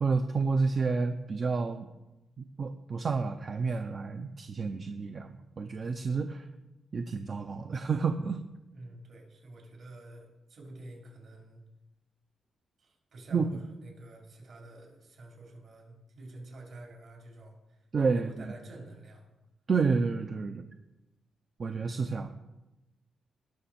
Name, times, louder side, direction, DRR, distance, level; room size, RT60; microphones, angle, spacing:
voice 1, 0.0-1.9 2.4-6.4 6.9-8.4 13.3-13.5 17.9-18.5 19.7-20.7 21.6-22.5, right 4 dB, 40° right, 7 dB, 0.6 m, -30 dB
voice 2, 8.7-11.6 12.8-17.9 18.1-19.3, right 1 dB, 60° right, -1 dB, 3.7 m, -48 dB
18.0 x 6.2 x 4.4 m, 0.98 s
cardioid pair, 125°, 0 cm